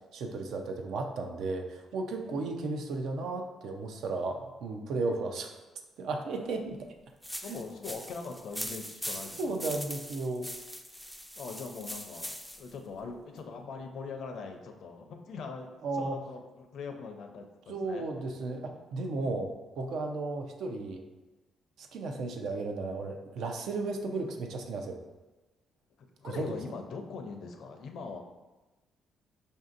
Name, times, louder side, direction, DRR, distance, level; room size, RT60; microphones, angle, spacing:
voice 1, 0.1-5.5 6.0-6.8 7.3-7.6 9.4-10.5 15.8-16.2 17.7-21.0 21.8-25.0 26.2-26.6, right 3 dB, 75° right, 3 dB, 0.5 m, -34 dB
voice 2, 2.1-2.6 7.4-9.8 11.4-18.1 26.2-28.2, left 4 dB, 70° left, 4 dB, 0.5 m, -42 dB
sound 1, 7.2-12.7, equal, ahead, 0.3 m, -41 dB
5.1 x 2.7 x 2.5 m, 1.1 s
cardioid pair, 90°, 0 cm